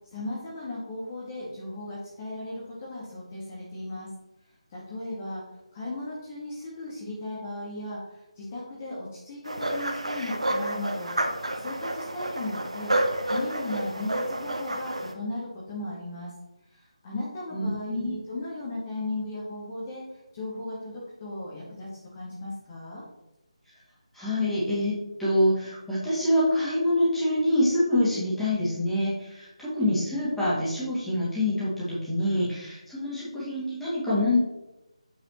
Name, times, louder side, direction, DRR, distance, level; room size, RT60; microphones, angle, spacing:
voice 1, 0.1-4.1 4.7-5.4 5.7-11.1 11.5-12.9 13.3-16.3 16.7-20.0 20.3-23.0, left 2 dB, 25° left, -6 dB, 1.6 m, -36 dB
sound 1, 9.4-15.1, right 1 dB, 70° right, 1.2 m, -30 dB
voice 2, 17.5-18.2 24.1-34.4, left 1 dB, 5° left, -11 dB, 2.3 m, -26 dB
8.7 x 6.7 x 3.1 m, 0.96 s
figure-of-eight pair, 155°, 4 cm